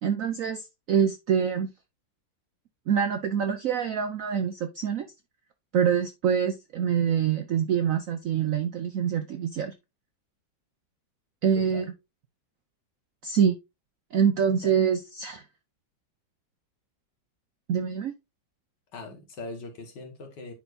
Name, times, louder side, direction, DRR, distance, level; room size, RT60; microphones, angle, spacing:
voice 1, 0.0-1.7 2.9-5.1 5.7-9.7 11.4-11.9 13.2-13.6 14.1-15.4 17.7-18.1, right 7 dB, 70° right, 0.8 m, -25 dB
voice 2, 11.6-11.9 14.6-14.7 18.9-20.5, left 3 dB, 65° left, 2.2 m, -41 dB
9.9 x 4.3 x 2.6 m
omnidirectional pair, 2.1 m